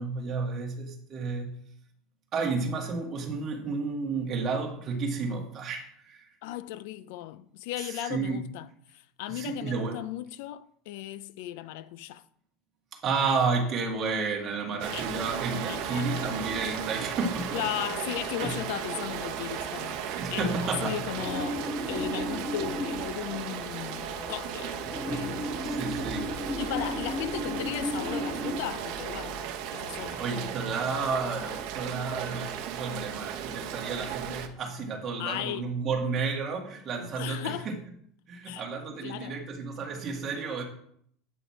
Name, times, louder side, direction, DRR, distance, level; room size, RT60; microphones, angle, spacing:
voice 1, 0.0-1.5 2.3-6.3 7.8-8.5 9.3-10.0 12.9-17.7 18.4-18.6 20.2-21.0 25.1-25.3 25.6-26.3 30.0-37.8 38.3-40.6, right 4 dB, 30° right, 1.7 m, -31 dB
voice 2, 6.4-8.7 8.9-12.2 14.9-15.2 15.7-16.5 17.5-25.6 26.5-29.4 29.7-30.2 35.2-35.7 37.2-37.7 38.5-38.6 39.0-39.3, left 13 dB, 70° left, 0.4 m, -36 dB
Rain, 14.8-34.5, right 9 dB, 60° right, 0.9 m, -36 dB
sound 1, 15.3-31.5, left 1 dB, 5° left, 1.4 m, -38 dB
8.7 x 5.6 x 4.3 m
supercardioid pair, 145°, 0 cm